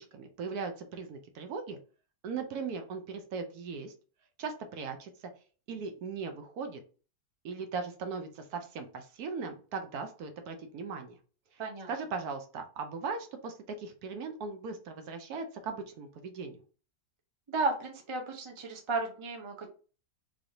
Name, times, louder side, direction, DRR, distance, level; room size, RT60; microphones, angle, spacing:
voice 1, 0.0-1.8 2.2-3.9 4.4-5.1 5.7-6.8 7.4-11.1 11.9-16.6, right 5 dB, 70° right, 6 dB, 1.1 m, -38 dB
voice 2, 11.6-11.9 17.5-19.7, right 3 dB, 45° right, 2 dB, 0.4 m, -33 dB
3.6 x 3.4 x 2.6 m, 0.37 s
omnidirectional pair, 1.8 m